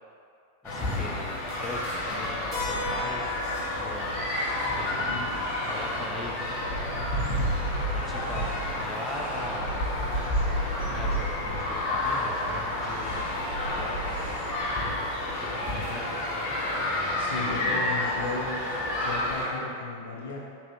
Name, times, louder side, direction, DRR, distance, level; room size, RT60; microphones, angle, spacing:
sound 1, 0.6-19.5, left 1 dB, 50° left, 1.1 m, -30 dB
voice 1, 0.6-3.3 3.7-4.1 4.8-5.2 5.7-6.8 7.9-9.8 10.3-13.4 13.7-14.5 15.4-16.6 17.3-17.8, left 2 dB, 10° left, -2 dB, 0.4 m, -41 dB
Keyboard (musical), 2.5-7.0, left 3 dB, 25° right, 1.1 m, -39 dB
sound 2, 2.8-14.4, right 1 dB, 80° left, 1.1 m, -44 dB
voice 2, 17.2-18.6 19.0-20.4, left 3 dB, 65° left, -3 dB, 0.8 m, -35 dB
3.8 x 2.8 x 4.6 m, 2.3 s
figure-of-eight pair, 90°, 0 cm